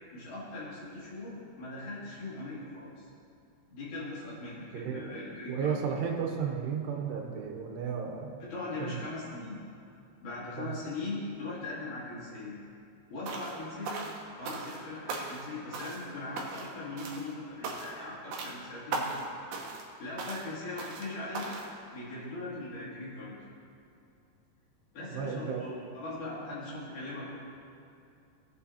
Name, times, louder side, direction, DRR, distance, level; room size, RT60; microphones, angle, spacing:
voice 1, 0.1-3.1 3.7-5.8 8.4-9.6 10.2-12.6 13.1-14.1 14.3-19.3 20.0-21.5 21.9-23.3 24.9-27.4, left 2 dB, 60° left, -8 dB, 3.6 m, -40 dB
voice 2, 4.7-5.2 5.5-8.4 8.8-9.0 10.6-10.7 25.1-25.7, right 7 dB, 85° right, 1 dB, 3.1 m, -34 dB
sound 1, 13.3-13.6 13.9-14.8 15.1-15.5 15.7-16.1 16.4-16.7 17.0-17.3 17.6-18.0 18.3-18.6 18.9-19.3 19.5-19.9 20.2-20.5 20.8-21.1 21.3-21.7, right 3 dB, 70° right, 2.0 m, -37 dB
18.0 x 7.5 x 2.8 m, 2.5 s
omnidirectional pair, 4.7 m